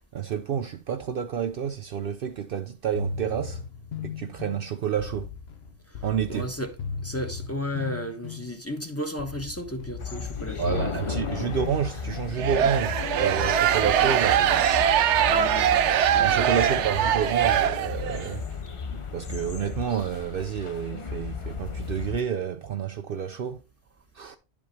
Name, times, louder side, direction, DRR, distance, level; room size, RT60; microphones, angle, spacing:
voice 1, 0.1-3.6 4.0-5.3 6.0-6.5 10.6-14.7 16.2-18.4 18.9-23.6 24.1-24.4, right 8 dB, 60° right, 0.7 m, -29 dB
sound 1, 2.9-12.7, left 6 dB, 65° left, 1.1 m, -37 dB
voice 2, 6.3-6.8 7.0-11.2 15.2-15.8 16.1-16.8, equal, 15° left, 1.0 m, -34 dB
sound 2, 10.0-22.2, left 6 dB, 40° left, 0.5 m, -35 dB
sound 3, 12.4-18.3, right 10 dB, 90° right, 0.9 m, -22 dB
10.5 x 5.2 x 3.2 m
omnidirectional pair, 1.2 m